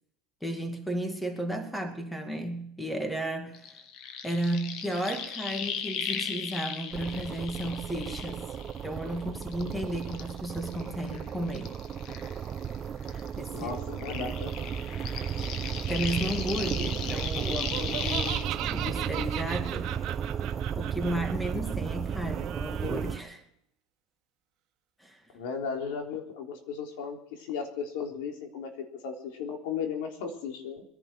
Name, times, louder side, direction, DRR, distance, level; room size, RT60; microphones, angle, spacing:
voice 1, 0.4-3.8 4.2-8.5 8.8-11.7 13.4-13.7 15.9-20.0 20.7-23.4 25.0-25.2, right 1 dB, 5° left, 2.2 m, -33 dB
sound 1, 3.5-9.1 9.4-12.8 13.0-18.4, left 7 dB, 55° left, 1.6 m, -37 dB
sound 2, 6.9-23.2, right 8 dB, 30° right, 0.8 m, -34 dB
voice 2, 13.5-14.5 25.3-28.7 29.0-30.8, left 6 dB, 75° left, 3.6 m, -35 dB
Laughter, 17.6-23.2, right 13 dB, 50° right, 1.9 m, -38 dB
21.5 x 11.0 x 6.1 m
supercardioid pair, 130°, 0 cm